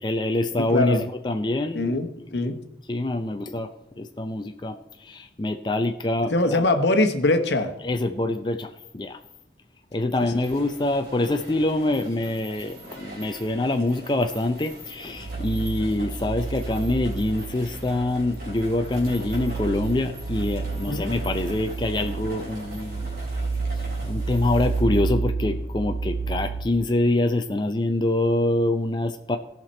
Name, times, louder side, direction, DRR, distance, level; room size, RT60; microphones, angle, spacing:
voice 1, 0.0-2.0 2.3-2.5 2.9-3.7 4.0-6.6 7.8-9.2 9.9-23.1 23.8-29.4, left 2 dB, 25° left, 6 dB, 0.5 m, -25 dB
voice 2, 0.6-1.0 1.7-2.6 6.3-7.7 20.9-21.1, left 2 dB, 75° left, 8 dB, 1.0 m, -22 dB
sound 1, 10.2-24.8, equal, 55° right, 3.7 m, -43 dB
sound 2, 15.1-26.6, right 4 dB, 35° right, 1.7 m, -30 dB
17.0 x 5.9 x 4.3 m, 0.89 s
head